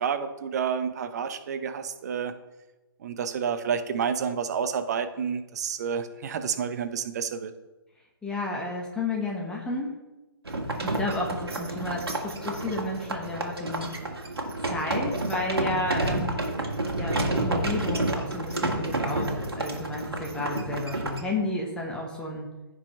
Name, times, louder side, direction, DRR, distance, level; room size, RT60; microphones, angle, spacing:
voice 1, 0.0-2.3 3.0-7.5, right 7 dB, 45° right, 10 dB, 0.9 m, -29 dB
voice 2, 8.2-9.9 10.8-13.9 14.6-16.4 17.0-22.5, left 2 dB, 5° left, -2 dB, 1.2 m, -32 dB
sound 1, 10.4-21.2, right 2 dB, 80° right, 1.9 m, -30 dB
15.5 x 5.4 x 3.3 m, 1.1 s
figure-of-eight pair, 140°, 13 cm